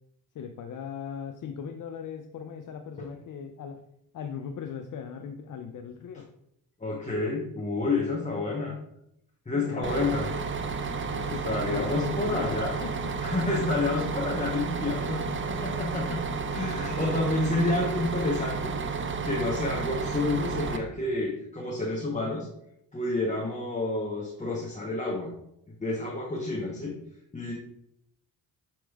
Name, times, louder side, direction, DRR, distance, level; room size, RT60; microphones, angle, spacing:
voice 1, 0.3-3.8 4.1-6.3 9.5-10.5 11.1-13.1, left 7 dB, 45° left, 5 dB, 0.5 m, -39 dB
voice 2, 6.8-8.8 9.5-10.3 11.2-12.8 13.2-16.2 16.5-18.8 19.2-22.5 22.9-25.3 25.8-27.0 27.3-27.5, left 2 dB, 15° left, -2 dB, 0.8 m, -29 dB
Bus, 9.8-20.8, right 5 dB, 25° right, 0.5 m, -32 dB
6.2 x 3.0 x 2.3 m, 0.77 s
supercardioid pair, 55°, 47 cm